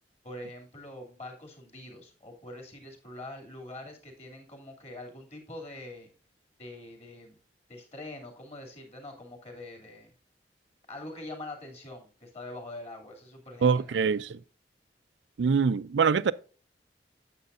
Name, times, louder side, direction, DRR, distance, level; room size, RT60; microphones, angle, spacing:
voice 1, 0.2-6.1 6.6-7.4 7.7-10.1 10.9-14.2, left 1 dB, 40° left, 2.7 m, -44 dB
voice 2, 13.6-14.4 15.4-16.3, right 5 dB, 85° right, 0.4 m, -24 dB
9.6 x 7.6 x 2.5 m
head